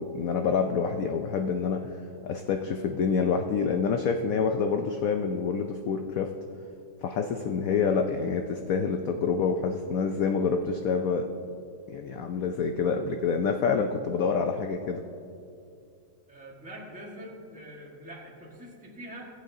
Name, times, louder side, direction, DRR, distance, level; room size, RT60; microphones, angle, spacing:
voice 1, 0.0-1.9 2.2-6.3 7.0-11.3 11.9-15.0, left 5 dB, 70° left, 5 dB, 0.8 m, -27 dB
voice 2, 16.3-19.3, right 1 dB, 5° right, -2 dB, 1.3 m, -44 dB
19.5 x 8.2 x 2.7 m, 2.4 s
omnidirectional pair, 1.9 m